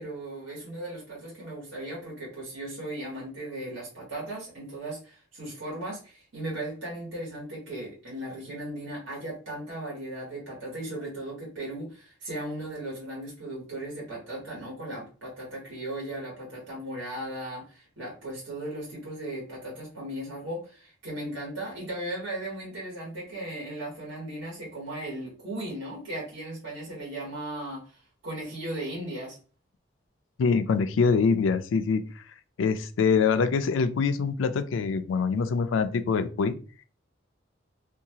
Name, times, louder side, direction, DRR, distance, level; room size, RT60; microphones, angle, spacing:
voice 1, 0.0-29.4, right 1 dB, 85° right, -5 dB, 1.3 m, -37 dB
voice 2, 30.4-32.0 32.6-36.6, left 5 dB, 85° left, 11 dB, 0.3 m, -24 dB
2.7 x 2.3 x 2.8 m, 0.37 s
head